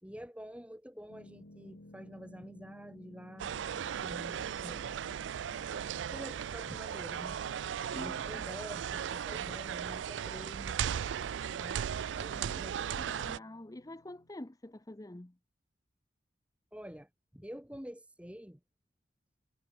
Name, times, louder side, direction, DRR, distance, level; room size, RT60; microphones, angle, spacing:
voice 1, 0.0-3.5 4.0-4.8 6.1-7.4 8.0-10.8 11.6-11.8 12.2-13.0 16.7-18.6, equal, 5° right, 2.5 m, -47 dB
sound 1, 1.1-14.3, left 1 dB, 75° left, 1.8 m, -58 dB
sound 2, 3.4-13.4, right 8 dB, 85° right, 0.4 m, -37 dB
voice 2, 7.9-8.4 12.5-12.7 13.0-15.3, left 1 dB, 20° left, 0.7 m, -47 dB
head